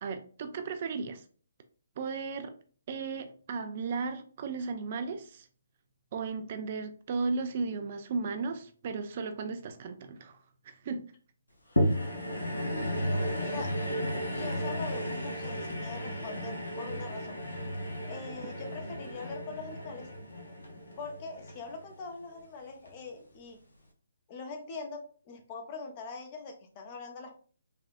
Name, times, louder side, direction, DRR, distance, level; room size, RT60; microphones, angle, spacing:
voice 1, 0.0-1.2 2.0-2.5 2.9-5.5 6.1-10.4 10.6-11.0, right 4 dB, 40° right, 0.3 m, -35 dB
sound 1, 11.8-22.2 22.9-23.0, equal, 75° left, 0.8 m, -34 dB
voice 2, 12.6-13.7 14.0-17.4 18.0-20.1 21.0-23.6 24.3-27.4, left 4 dB, 30° left, 0.6 m, -43 dB
3.3 x 2.3 x 2.5 m
figure-of-eight pair, 135°, 0 cm